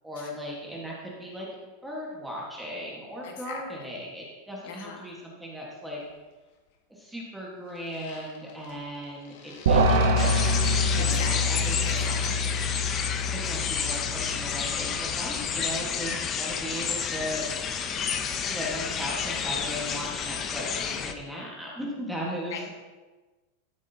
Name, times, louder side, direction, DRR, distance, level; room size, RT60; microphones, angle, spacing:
voice 1, 0.0-1.5 1.8-6.0 6.9-12.1 13.3-17.8 18.4-22.7, equal, 5° right, -4 dB, 1.3 m, -37 dB
voice 2, 3.2-3.6 4.7-5.1 11.0-12.4 22.5-22.7, left 6 dB, 70° left, 1 dB, 1.5 m, -40 dB
sound 1, 6.0-6.2 7.7-12.3, left 6 dB, 50° left, 1.3 m, -45 dB
sound 2, 9.7-15.2, equal, 85° right, 1.4 m, -26 dB
sound 3, 10.2-21.1, left 7 dB, 20° left, 0.5 m, -30 dB
13.0 x 7.3 x 2.7 m, 1.2 s
supercardioid pair, 170°, 0 cm